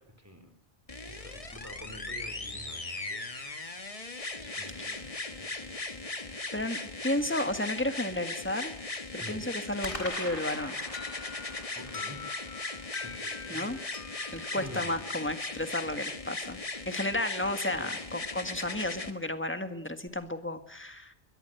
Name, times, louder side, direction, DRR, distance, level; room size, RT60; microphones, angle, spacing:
voice 1, 0.2-0.5 1.1-3.4 4.4-5.8 9.2-9.4 11.7-12.3 13.0-13.6 14.0-15.0 17.7-18.0, equal, 15° right, 7 dB, 4.0 m, -48 dB
sound 1, 0.9-19.1 20.1-20.2, left 2 dB, 30° left, 1.7 m, -38 dB
sound 2, 2.1-4.0 9.8-14.1, left 1 dB, 60° left, 5.9 m, -45 dB
voice 2, 6.5-8.7 9.1-10.8 13.5-13.8 14.3-16.6 16.8-21.1, left 1 dB, 10° left, 8 dB, 1.8 m, -33 dB
Alarm, 10.9-15.7, left 6 dB, 85° left, 1.5 m, -46 dB
22.5 x 22.0 x 8.0 m, 0.68 s
omnidirectional pair, 1.1 m